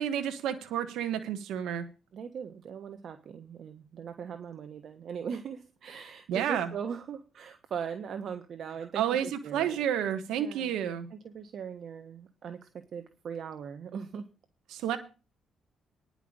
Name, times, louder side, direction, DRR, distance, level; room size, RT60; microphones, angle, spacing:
voice 1, 0.0-1.8 6.3-6.7 8.9-11.1 14.7-15.0, right 9 dB, 85° right, 8 dB, 1.4 m, -30 dB
voice 2, 2.1-9.7 10.3-10.8 11.1-14.2 14.7-14.9, right 7 dB, 60° right, 8 dB, 1.4 m, -40 dB
10.5 x 5.9 x 8.7 m, 0.32 s
cardioid pair, 90°, 0 cm